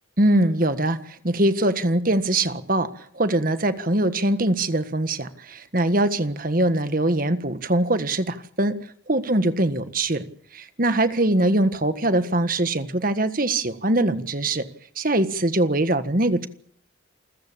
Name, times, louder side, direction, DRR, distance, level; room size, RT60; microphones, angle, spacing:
voice 1, 0.2-2.9 3.1-8.7 9.1-10.2 10.5-14.6 15.0-16.5, right 1 dB, 45° right, 11 dB, 1.6 m, -22 dB
28.5 x 14.5 x 8.7 m, 0.62 s
head